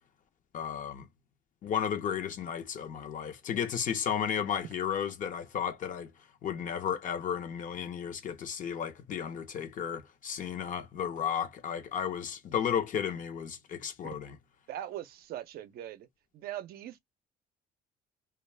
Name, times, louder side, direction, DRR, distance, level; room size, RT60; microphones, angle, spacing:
voice 1, 0.5-1.1 1.6-6.1 6.4-14.4, left 8 dB, 50° left, 0.7 m, -33 dB
voice 2, 14.7-16.1 16.3-17.0, right 12 dB, 65° right, 0.5 m, -41 dB
2.3 x 2.3 x 3.2 m
cardioid pair, 110°, 17 cm